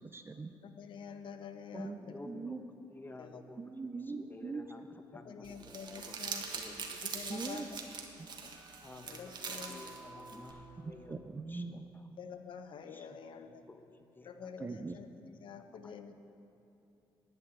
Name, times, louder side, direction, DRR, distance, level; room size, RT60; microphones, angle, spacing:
voice 1, 0.0-0.5 1.7-2.7 3.6-4.9 7.3-7.7 8.2-8.3 10.8-11.9 14.6-15.0, right 4 dB, 25° right, 8 dB, 0.5 m, -42 dB
voice 2, 0.6-2.2 3.2-3.4 5.2-6.4 6.9-7.8 8.1-8.5 9.1-9.9 10.4-10.5 12.2-13.6 14.2-16.1, left 6 dB, 65° left, 8 dB, 0.8 m, -48 dB
voice 3, 2.0-2.6 2.9-4.0 4.3-4.8 5.1-6.3 6.5-6.8 8.8-11.2 11.5-11.6 12.9-13.2 13.7-13.8 14.1-14.5, left 2 dB, 20° left, 7 dB, 0.9 m, -52 dB
Crumpling crinkling, 5.4-10.5, right 5 dB, 50° right, 1.4 m, -43 dB
sound 1, 5.8-11.1, right 3 dB, 70° right, 1.5 m, -56 dB
11.0 x 5.7 x 8.9 m, 2.7 s
cardioid pair, 75°, 9 cm